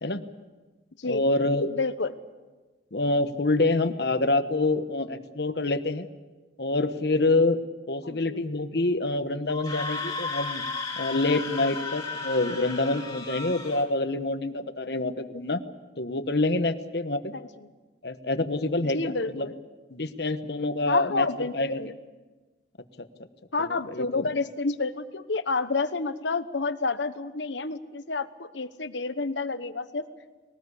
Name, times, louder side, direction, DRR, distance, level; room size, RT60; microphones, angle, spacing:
voice 1, 1.1-1.8 2.9-6.1 6.6-7.6 7.9-10.6 11.0-15.6 16.0-17.3 18.0-19.5 19.9-21.8 23.0-23.1 23.6-24.2, left 2 dB, 65° left, 10 dB, 1.2 m, -26 dB
voice 2, 1.7-2.1 8.0-8.4 17.3-17.5 18.8-19.5 20.9-21.9 23.5-30.1, left 3 dB, 85° left, 11 dB, 1.1 m, -29 dB
Screaming, 9.5-13.8, left 3 dB, 20° left, 3.4 m, -34 dB
22.0 x 19.0 x 8.4 m, 1.3 s
head